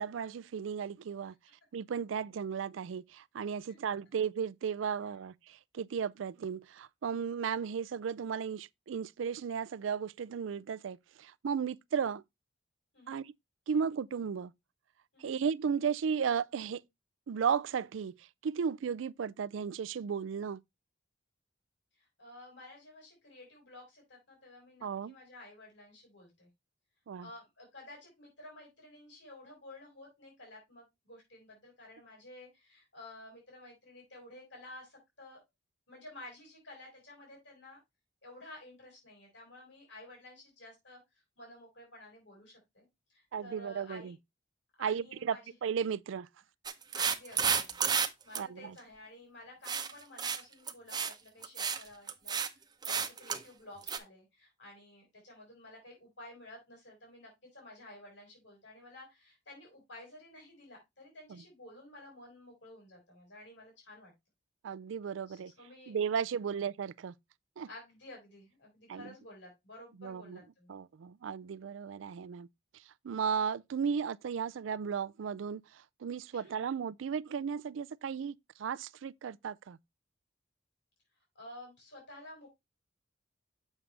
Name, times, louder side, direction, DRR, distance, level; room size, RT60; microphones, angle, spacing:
voice 1, 0.0-1.4 1.7-12.2 13.1-13.3 13.7-14.5 15.2-16.8 17.3-20.6 24.8-25.2 27.1-27.3 43.3-44.2 44.8-45.4 45.6-46.3 48.4-48.8 61.3-61.4 64.6-65.5 65.9-67.1 67.6-67.7 68.9-69.0 70.0-70.4 70.7-72.5 73.0-79.8, right 7 dB, 85° right, 0.4 m, -35 dB
voice 2, 22.0-26.5 27.2-35.4 35.9-37.8 38.2-41.0 41.4-44.1 44.8-45.5 46.9-47.9 48.2-64.1 65.3-66.0 66.5-66.6 67.7-70.7 76.3-76.5 81.4-82.5, left 1 dB, 70° left, 5.5 m, -52 dB
sound 1, 46.7-48.1 48.4-48.5 49.7-49.9 50.2-50.4 50.7-51.1 51.4-51.8 52.1-52.5 52.8-53.4 53.9-54.0, right 6 dB, 20° right, 0.7 m, -31 dB
7.3 x 6.4 x 3.3 m
head